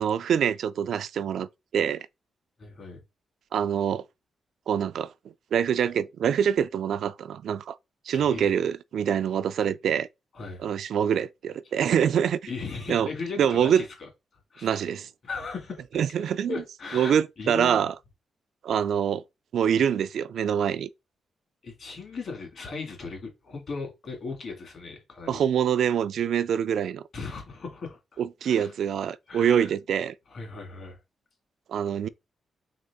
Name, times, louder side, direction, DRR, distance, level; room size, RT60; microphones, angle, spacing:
voice 1, 0.0-2.1 3.5-4.0 4.7-5.1 5.5-7.8 8.1-10.1 10.6-12.4 12.9-13.1 13.4-13.8 14.6-15.1 15.9-16.6 16.9-18.0 18.6-19.2 19.5-20.9 25.3-27.0 28.2-30.1 31.7-32.1, right 8 dB, 70° right, 0.3 m, -25 dB
voice 2, 2.6-3.0 8.1-8.5 10.3-10.6 12.5-14.1 14.5-14.8 15.2-16.1 16.5-17.1 17.4-17.9 21.6-25.4 27.1-28.7 29.3-29.7 30.3-31.0, left 4 dB, 50° left, 2.0 m, -37 dB
3.8 x 3.8 x 3.4 m
cardioid pair, 125°, 0 cm